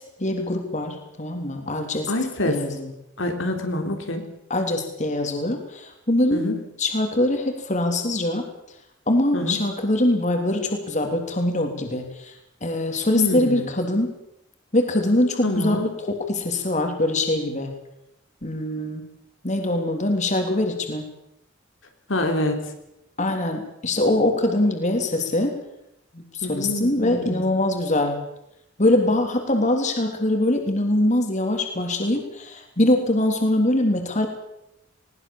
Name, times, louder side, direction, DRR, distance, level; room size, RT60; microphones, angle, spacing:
voice 1, 0.2-2.1 2.4-2.9 4.5-6.5 6.8-8.5 9.1-12.3 12.6-14.1 14.7-15.8 16.1-17.7 18.4-19.1 19.4-21.0 23.2-25.6 26.1-28.2 28.8-34.3, left 1 dB, 40° left, 4 dB, 3.5 m, -23 dB
voice 2, 2.1-2.6 3.2-4.2 6.3-6.6 9.3-9.6 13.1-13.7 15.4-15.9 22.1-22.7 26.4-27.5, left 1 dB, 75° left, 4 dB, 3.6 m, -26 dB
21.0 x 19.5 x 7.4 m, 0.82 s
head